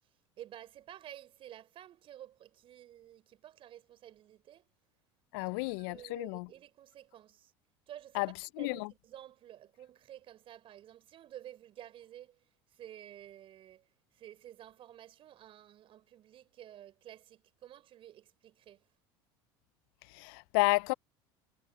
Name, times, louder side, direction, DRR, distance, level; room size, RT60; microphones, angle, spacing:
voice 1, 0.4-4.7 5.4-7.5 7.9-12.4 12.7-13.9 14.1-18.8, right 11 dB, 45° right, 4.9 m, -52 dB
voice 2, 5.3-6.5 8.2-8.9 20.1-20.9, left 25 dB, 70° left, 0.4 m, -31 dB
hypercardioid pair, 90°, 12 cm